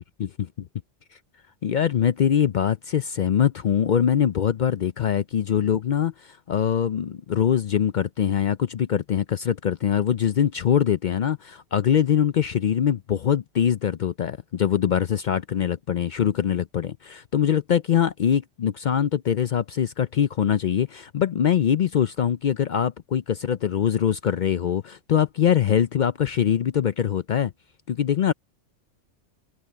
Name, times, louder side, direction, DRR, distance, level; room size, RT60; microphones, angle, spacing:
voice 1, 0.2-0.7 1.6-27.5 27.9-28.3, left 9 dB, 60° left, 0.5 m, -23 dB
omnidirectional pair, 1.2 m